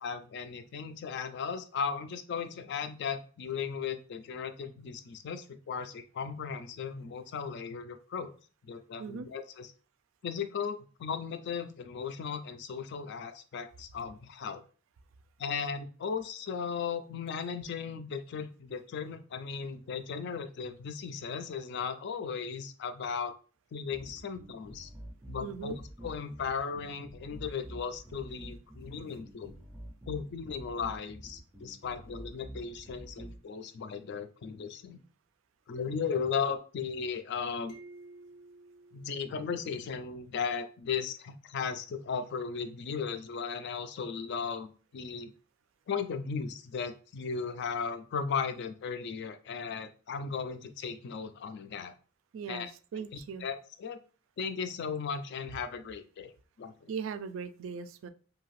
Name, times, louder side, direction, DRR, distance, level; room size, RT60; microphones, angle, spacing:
voice 1, 0.0-8.3 8.6-9.7 10.2-14.6 15.4-23.3 23.7-24.9 25.3-29.5 30.1-35.0 35.7-37.8 38.9-45.3 45.9-51.9 52.5-52.7 53.4-54.0 54.4-56.3 56.6-56.9, left 6 dB, 60° left, 0.3 m, -36 dB
voice 2, 9.0-9.3 25.4-25.8 52.3-53.5 56.9-58.1, right 6 dB, 70° right, 0.3 m, -39 dB
sound 1, 23.9-33.4, right 1 dB, 10° right, 0.5 m, -47 dB
sound 2, 37.7-40.2, right 2 dB, 85° left, 0.8 m, -53 dB
2.7 x 2.4 x 3.1 m
head